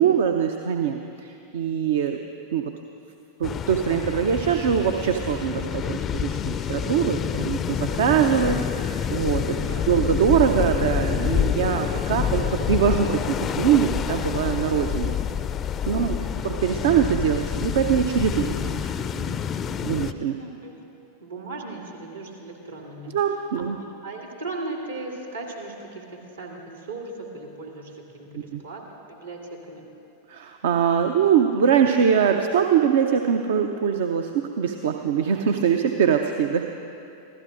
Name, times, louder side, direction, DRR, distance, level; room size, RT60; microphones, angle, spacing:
voice 1, 0.0-2.2 2.5-2.7 3.4-8.6 8.8-15.2 15.9-16.2 16.4-19.4 19.8-20.4 23.1-23.8 28.5-28.6 30.3-36.6, right 8 dB, 60° right, 5 dB, 0.6 m, -23 dB
sound 1, 3.4-20.1, left 8 dB, 25° left, 0.4 m, -27 dB
voice 2, 9.6-10.2 16.0-16.4 20.4-20.8 21.2-23.2 23.5-29.8, right 2 dB, 75° right, -1 dB, 2.5 m, -38 dB
25.0 x 16.0 x 2.5 m, 2.8 s
figure-of-eight pair, 90°, 0 cm